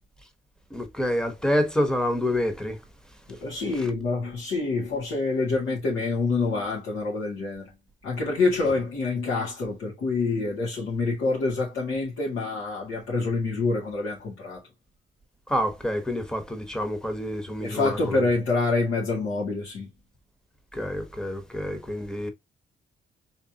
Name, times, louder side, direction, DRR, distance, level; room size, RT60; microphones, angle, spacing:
voice 1, 0.7-2.8 15.5-18.2 20.7-22.3, equal, 5° left, 1.1 m, -27 dB
voice 2, 3.3-7.7 8.0-14.6 17.6-19.9, left 3 dB, 80° left, 2.2 m, -27 dB
4.1 x 3.2 x 2.9 m
cardioid pair, 90°, 20 cm